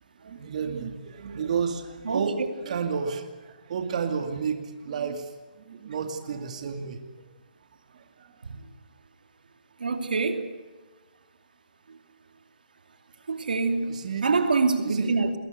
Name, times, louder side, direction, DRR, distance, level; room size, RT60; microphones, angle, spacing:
voice 1, 0.2-5.3 5.6-7.0 7.9-8.4 13.8-14.3 14.8-15.2, right 6 dB, 55° right, 2.4 m, -32 dB
voice 2, 9.8-10.5 13.3-15.4, right 4 dB, 85° right, 2.6 m, -25 dB
21.5 x 19.0 x 9.4 m
hypercardioid pair, 155°, 5 cm